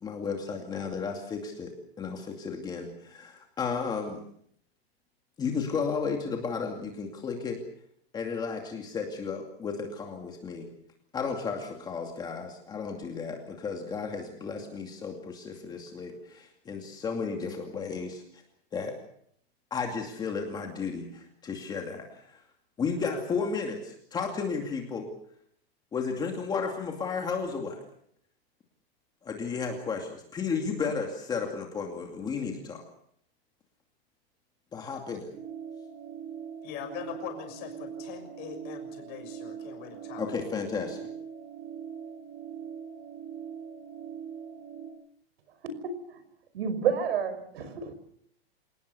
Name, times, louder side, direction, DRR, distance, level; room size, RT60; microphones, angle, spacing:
voice 1, 0.0-4.2 5.4-7.6 8.1-10.7 11.1-18.2 18.7-19.0 19.7-22.4 22.8-25.1 25.9-27.8 29.2-32.8 34.7-35.3 40.2-41.1, left 5 dB, 15° left, 2 dB, 2.5 m, -33 dB
sound 1, 35.3-44.9, right 8 dB, 20° right, 4.3 m, -42 dB
voice 2, 36.6-40.5, left 9 dB, 30° left, 5 dB, 6.3 m, -42 dB
voice 3, 45.6-46.2 46.5-47.9, right 7 dB, 75° right, 12 dB, 5.9 m, -30 dB
27.5 x 19.5 x 7.0 m, 0.67 s
supercardioid pair, 175°, 31 cm